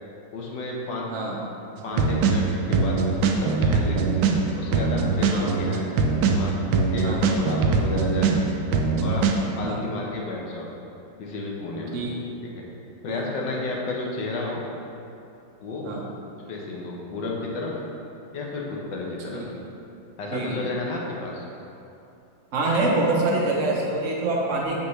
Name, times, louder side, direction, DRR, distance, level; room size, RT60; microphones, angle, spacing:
voice 1, 0.3-1.1 1.8-4.0 4.6-5.9 6.2-8.5 9.0-9.3 9.5-10.7 11.2-12.0 12.4-12.6 13.0-14.6 15.6-15.9 16.5-17.8 18.3-19.4 20.2-21.4, left 2 dB, 70° left, -2 dB, 1.5 m, -32 dB
sound 1, 2.0-4.4 4.7-8.4 8.7-9.3, right 4 dB, 80° right, 1.3 m, -22 dB
voice 2, 22.5-24.8, right 2 dB, 50° right, -2 dB, 1.0 m, -25 dB
7.0 x 5.3 x 3.2 m, 2.8 s
omnidirectional pair, 2.1 m